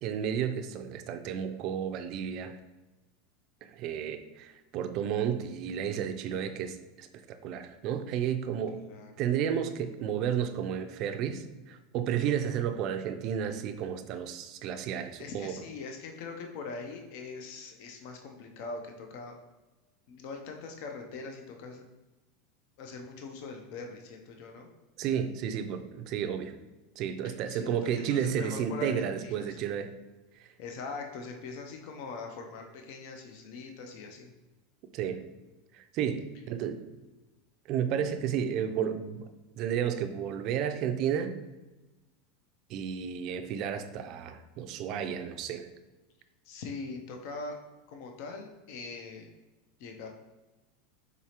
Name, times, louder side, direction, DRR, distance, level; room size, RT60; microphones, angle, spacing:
voice 1, 0.0-2.6 3.6-8.8 9.2-15.5 25.0-26.5 27.0-29.9 34.9-35.2 35.7-36.8 37.7-39.3 39.6-41.3 42.7-45.7, right 8 dB, 40° right, 8 dB, 0.4 m, -32 dB
voice 2, 8.7-9.1 15.2-19.4 20.1-21.8 22.8-24.7 27.2-29.5 30.6-34.3 46.5-47.6 47.9-49.3 49.8-50.1, left 4 dB, 55° left, 3 dB, 0.5 m, -42 dB
4.7 x 3.9 x 2.9 m, 1.1 s
supercardioid pair, 155°, 0 cm